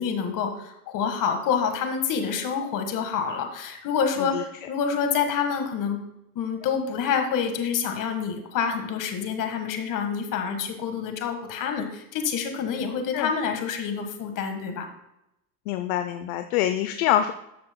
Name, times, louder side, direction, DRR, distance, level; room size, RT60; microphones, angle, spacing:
voice 1, 0.0-6.0 6.3-14.9, left 6 dB, 40° left, 6 dB, 1.6 m, -27 dB
voice 2, 15.7-17.3, left 11 dB, 60° left, 8 dB, 0.7 m, -25 dB
12.5 x 7.5 x 2.2 m, 0.85 s
hypercardioid pair, 105°, 48 cm